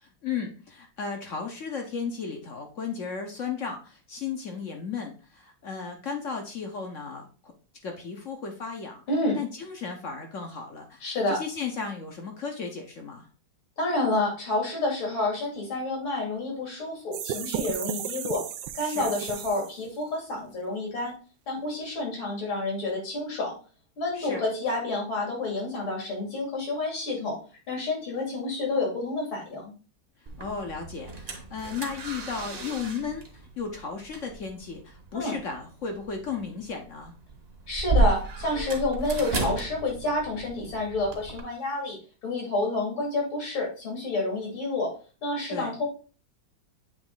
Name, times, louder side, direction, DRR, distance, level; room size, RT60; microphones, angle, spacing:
voice 1, 0.0-7.5 7.8-9.0 9.3-13.3 18.8-19.1 24.1-24.4 30.4-37.1 45.5-45.7, left 5 dB, 55° left, 4 dB, 0.9 m, -35 dB
voice 2, 9.1-9.4 11.0-11.4 13.8-18.4 18.7-21.1 21.5-23.5 24.0-27.4 27.7-29.7 35.1-35.3 37.7-42.0 42.2-44.9 45.2-45.9, left 2 dB, 80° left, -1 dB, 3.5 m, -29 dB
sound 1, 17.1-19.9, right 10 dB, 75° right, 1.1 m, -34 dB
sound 2, 30.3-41.4, right 3 dB, 40° right, 1.0 m, -33 dB
8.0 x 3.2 x 3.8 m, 0.36 s
omnidirectional pair, 2.2 m